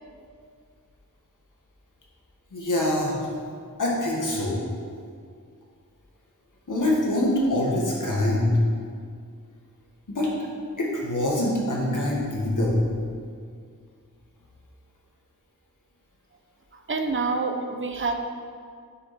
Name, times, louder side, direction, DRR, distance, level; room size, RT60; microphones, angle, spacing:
voice 1, 2.5-3.3 3.8-4.6 6.7-8.5 10.1-10.3 10.8-12.8, left 1 dB, 65° left, -3 dB, 2.1 m, -24 dB
voice 2, 16.7-18.1, right 4 dB, 35° right, 5 dB, 0.8 m, -27 dB
9.4 x 6.3 x 4.5 m, 2.2 s
wide cardioid pair, 75°, 33 cm